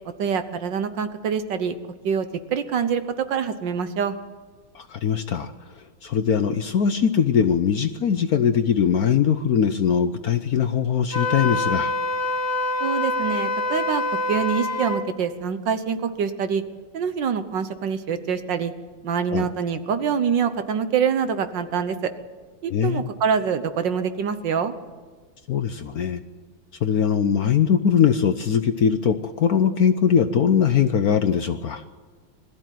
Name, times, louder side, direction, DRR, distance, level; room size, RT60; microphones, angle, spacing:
voice 1, 0.2-1.7 2.0-2.3 2.5-4.2 12.8-16.6 16.9-18.7 19.0-22.1 22.6-24.7, right 7 dB, 65° right, 10 dB, 1.7 m, -25 dB
voice 2, 4.7-5.5 6.0-11.9 19.3-19.5 22.7-23.1 25.5-26.2 26.8-31.8, left 7 dB, 60° left, 10 dB, 1.0 m, -21 dB
Wind instrument woodwind instrument, 11.1-15.0, left 2 dB, 10° left, 2.2 m, -25 dB
21.5 x 14.0 x 9.2 m, 1.5 s
omnidirectional pair, 2.2 m